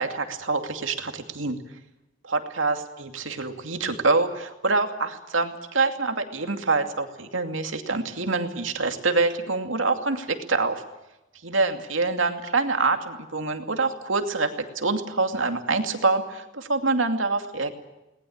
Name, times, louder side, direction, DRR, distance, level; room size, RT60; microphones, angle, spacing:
voice 1, 0.0-1.6 2.2-10.8 11.4-17.8, right 3 dB, 90° right, 5 dB, 2.5 m, -26 dB
20.5 x 19.5 x 8.7 m, 0.97 s
head